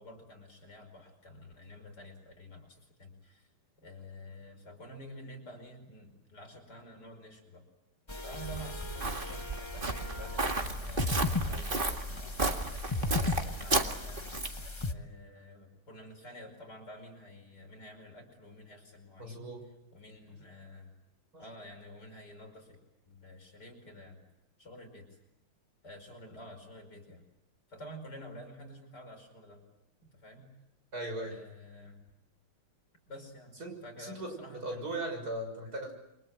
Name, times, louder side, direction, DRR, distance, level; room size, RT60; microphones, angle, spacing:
voice 1, 0.0-3.5 3.8-7.6 8.2-12.4 12.9-14.3 14.9-19.5 19.9-20.9 21.4-22.8 23.1-24.2 24.6-25.2 25.8-27.2 27.7-29.7 30.0-30.5 31.3-32.0 33.1-34.9, equal, 50° left, 4 dB, 5.6 m, -49 dB
sound 1, 8.1-14.9, left 3 dB, 20° left, 0.8 m, -36 dB
Walk footsteps, 8.4-14.7, right 3 dB, 25° right, 1.9 m, -33 dB
voice 2, 19.2-19.6 21.3-21.5 30.9-31.4 33.6-35.9, right 1 dB, 45° right, 4 dB, 7.0 m, -38 dB
29.0 x 24.5 x 8.0 m, 0.88 s
omnidirectional pair, 2.4 m